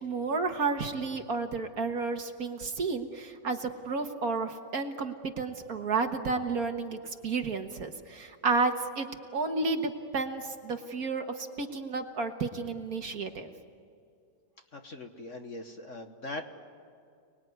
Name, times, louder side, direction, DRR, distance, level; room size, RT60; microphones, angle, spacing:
voice 1, 0.0-13.5, right 4 dB, 50° right, 5 dB, 1.7 m, -32 dB
voice 2, 14.7-16.4, left 2 dB, 45° left, 5 dB, 1.5 m, -41 dB
30.0 x 20.5 x 9.5 m, 2.4 s
omnidirectional pair, 2.1 m